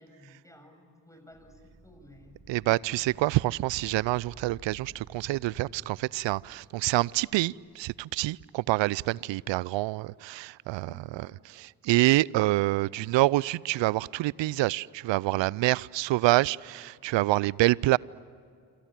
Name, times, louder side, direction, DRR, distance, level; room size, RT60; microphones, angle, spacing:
voice 1, 0.0-2.4 10.8-11.4, left 1 dB, 5° left, 7.1 m, -54 dB
sound 1, 1.3-7.5, right 4 dB, 40° right, 7.4 m, -52 dB
voice 2, 2.5-11.3 11.5-18.0, right 18 dB, 65° right, 0.6 m, -26 dB
27.5 x 26.0 x 7.6 m
hypercardioid pair, 45°, 49 cm